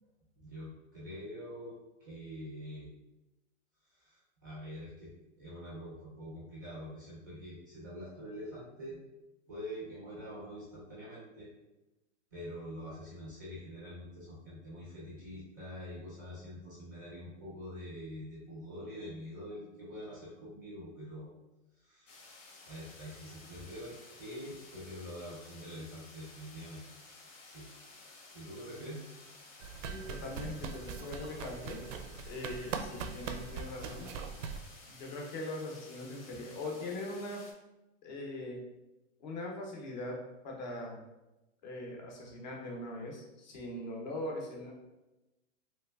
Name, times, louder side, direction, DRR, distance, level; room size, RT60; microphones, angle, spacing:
voice 1, 0.4-1.7 2.0-2.9 3.8-5.1 5.4-9.0 9.5-11.5 12.3-21.3 21.7-26.9 27.4-27.7 28.3-29.0, equal, 15° right, -7 dB, 0.4 m, -45 dB
sound 1, 22.1-37.5, left 3 dB, 85° left, 1.0 m, -54 dB
sound 2, 29.6-34.6, right 5 dB, 85° right, 0.5 m, -41 dB
voice 2, 29.9-31.8 32.3-34.1 34.9-37.4 38.0-38.6 39.2-41.0 41.6-44.7, left 1 dB, 35° left, 0 dB, 0.6 m, -41 dB
3.2 x 3.1 x 2.2 m, 0.99 s
supercardioid pair, 175°, 37 cm